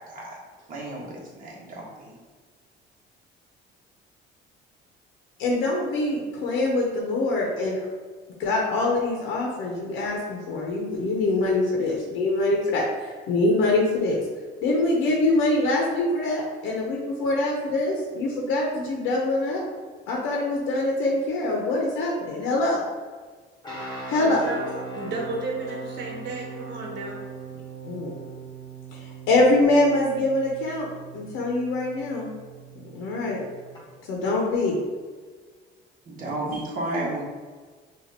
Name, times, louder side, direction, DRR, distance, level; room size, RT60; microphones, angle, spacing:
voice 1, 0.1-0.4 0.7-2.2 36.0-37.2, right 2 dB, 45° right, -5 dB, 1.3 m, -32 dB
voice 2, 5.4-7.8 8.4-14.2 14.6-19.6 20.1-22.8 24.1-24.4 27.8-28.1 29.3-32.3 32.9-33.4 34.1-34.8, left 2 dB, 80° left, -2 dB, 0.8 m, -24 dB
sound 1, 23.6-33.8, right 4 dB, 20° left, 1.1 m, -39 dB
voice 3, 24.2-24.6 24.9-27.2, right 2 dB, 60° right, -1 dB, 1.2 m, -33 dB
5.8 x 2.6 x 2.8 m, 1.5 s
cardioid pair, 135°, 20 cm